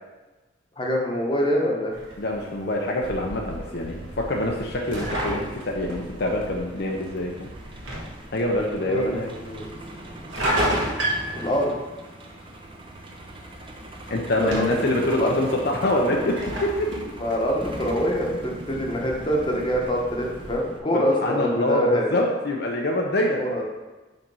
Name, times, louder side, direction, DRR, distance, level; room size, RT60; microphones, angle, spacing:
voice 1, 0.8-1.9 8.9-9.2 9.4-9.6 11.3-11.8 14.4-14.9 15.2-15.3 17.2-22.1 23.4-23.6, equal, 25° left, -1 dB, 1.1 m, -25 dB
sound 1, 1.9-20.5, right 1 dB, 85° right, 1.6 m, -34 dB
voice 2, 2.2-7.5 8.3-9.3 14.1-16.9 20.9-23.4, left 1 dB, 60° left, 0 dB, 0.7 m, -25 dB
Truck, 3.0-20.8, right 1 dB, 30° right, 0.7 m, -40 dB
5.3 x 4.3 x 5.4 m, 1.2 s
head